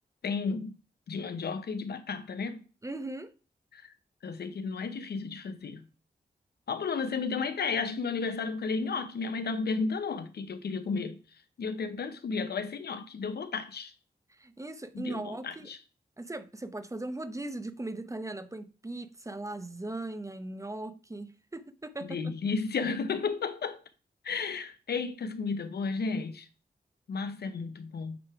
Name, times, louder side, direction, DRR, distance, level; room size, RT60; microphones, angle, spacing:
voice 1, 0.2-0.8 1.1-2.6 3.7-3.9 4.2-5.8 6.7-11.2 11.6-13.9 14.9-15.8 22.0-23.8 24.2-26.5 27.1-28.2, left 4 dB, 80° left, 0.7 m, -33 dB
voice 2, 2.8-3.3 14.4-15.7 16.2-22.2, right 2 dB, 20° right, 0.7 m, -38 dB
8.5 x 3.4 x 4.7 m
wide cardioid pair, 75°, 16 cm